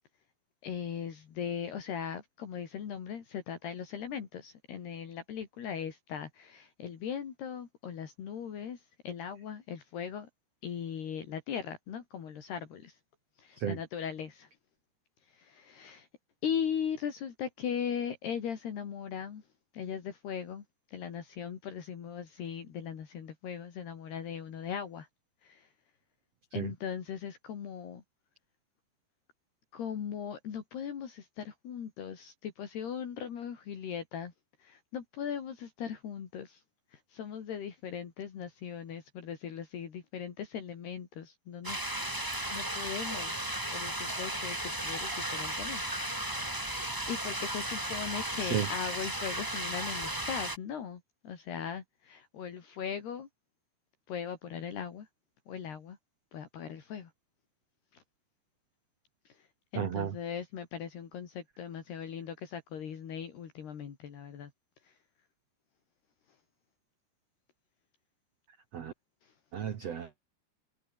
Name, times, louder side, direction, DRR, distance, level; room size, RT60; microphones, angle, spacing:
voice 1, 0.6-10.3 10.6-13.0 13.4-14.5 15.3-16.1 16.4-19.4 19.7-25.1 25.4-25.7 26.5-28.0 29.7-34.3 34.6-36.6 36.9-45.8 46.4-53.3 54.1-55.1 55.5-56.0 56.3-57.1 59.7-64.5 64.8-64.9 69.2-69.3, left 8 dB, 65° left, 5.0 m, -39 dB
sound 1, 41.6-50.6, right 1 dB, 5° right, 2.0 m, -35 dB
voice 2, 59.8-60.2 68.7-68.9 69.5-70.1, right 9 dB, 55° right, 1.8 m, -33 dB
omnidirectional pair, 5.1 m